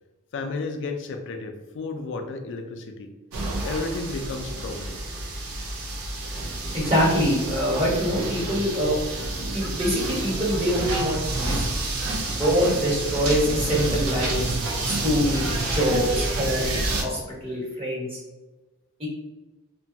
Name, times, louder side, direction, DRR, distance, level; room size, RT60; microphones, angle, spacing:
voice 1, 0.3-3.1 3.6-5.0, left 3 dB, 60° left, 6 dB, 0.4 m, -32 dB
sound 1, 3.3-17.0, right 2 dB, 90° right, 0.6 m, -29 dB
voice 2, 6.7-8.9 9.5-11.6 12.4-14.6 14.8-16.7 17.0-18.2 19.0-19.1, equal, 25° right, -6 dB, 1.1 m, -24 dB
2.8 x 2.2 x 2.7 m, 1.2 s
head